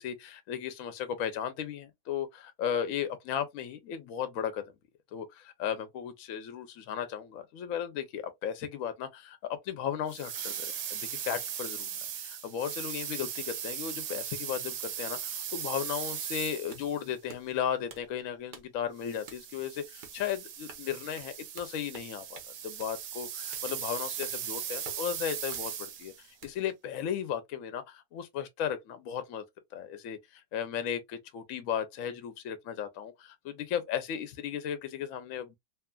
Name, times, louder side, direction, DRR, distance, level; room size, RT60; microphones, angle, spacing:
voice 1, 0.0-4.7 5.1-10.7 10.9-11.9 12.2-29.4 29.7-35.6, left 9 dB, 65° left, 0.9 m, -35 dB
Steamer - Mono, 10.1-17.1 19.0-26.3, right 9 dB, 70° right, 1.0 m, -38 dB
sound 1, 16.6-26.6, right 4 dB, 50° right, 0.6 m, -53 dB
2.9 x 2.4 x 2.2 m
omnidirectional pair, 1.7 m